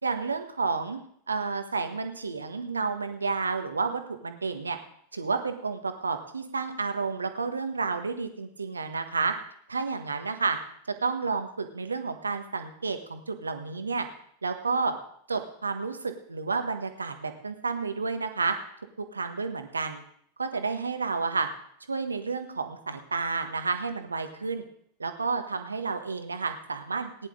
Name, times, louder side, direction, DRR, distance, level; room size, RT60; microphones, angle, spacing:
voice 1, 0.0-1.0 1.3-4.8 5.1-9.3 9.7-10.6 11.0-14.1 14.4-14.9 15.3-18.5 19.0-20.0 20.4-21.5 21.9-24.6 25.0-27.3, right 4 dB, 75° right, 7 dB, 1.4 m, -30 dB
19.0 x 10.5 x 3.7 m, 0.64 s
figure-of-eight pair, 90°, 0 cm